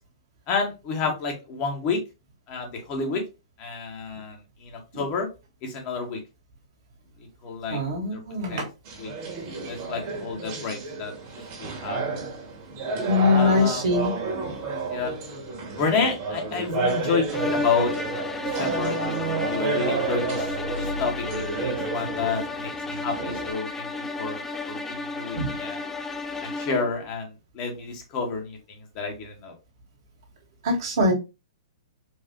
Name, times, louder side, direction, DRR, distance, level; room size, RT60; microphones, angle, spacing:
voice 1, 0.5-2.0 2.5-3.2 3.6-5.3 5.6-6.2 7.4-7.8 8.1-8.2 8.5-8.7 9.0-9.1 9.7-11.1 11.6-12.0 13.3-13.9 14.9-15.1 15.8-17.9 18.4-20.5 20.7-23.9 24.2-24.4 24.7-25.8 26.4-29.5, left 4 dB, 40° left, 2 dB, 1.5 m, -30 dB
voice 2, 7.7-8.7 13.1-14.1 25.4-25.5 30.6-31.1, left 3 dB, 60° right, 0 dB, 2.0 m, -22 dB
sound 1, 8.8-23.5, right 3 dB, 40° right, 1.8 m, -31 dB
sound 2, 17.3-27.0, left 3 dB, 10° left, 0.4 m, -33 dB
4.6 x 2.7 x 2.9 m, 0.27 s
hypercardioid pair, 120°, 3 cm